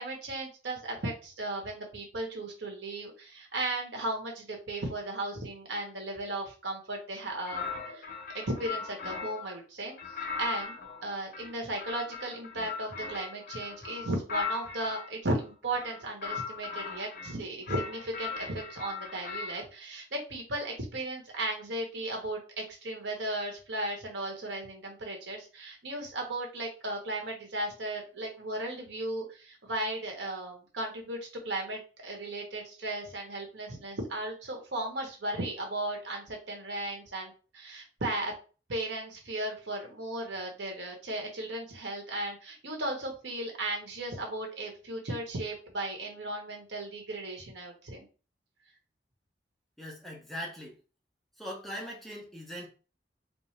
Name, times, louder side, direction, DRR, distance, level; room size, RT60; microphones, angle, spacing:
voice 1, 0.0-8.0 8.3-9.9 10.4-10.8 11.0-38.3 38.7-48.1, right 1 dB, 80° right, 1 dB, 1.2 m, -36 dB
sound 1, 7.4-9.5 10.0-15.1 15.7-17.3 17.7-19.6, left 5 dB, 50° left, 0.6 m, -38 dB
voice 2, 49.8-50.8 51.4-52.7, equal, ahead, -2 dB, 0.8 m, -40 dB
4.3 x 2.1 x 3.2 m, 0.35 s
head